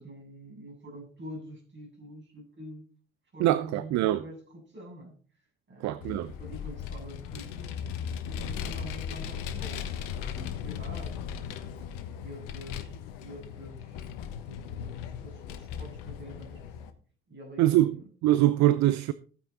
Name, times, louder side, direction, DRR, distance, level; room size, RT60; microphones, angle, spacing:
voice 1, 0.0-2.9 3.3-5.2 5.7-7.8 8.2-11.7 12.2-14.1 14.5-17.0 17.3-18.1, right 1 dB, 35° right, 7.7 m, -46 dB
voice 2, 3.4-4.2 5.8-6.3 17.6-18.0 18.2-19.1, right 14 dB, 55° right, 0.7 m, -23 dB
Vehicle, 6.0-16.9, left 8 dB, 65° left, 1.3 m, -37 dB
14.5 x 9.1 x 4.0 m
figure-of-eight pair, 50°, 34 cm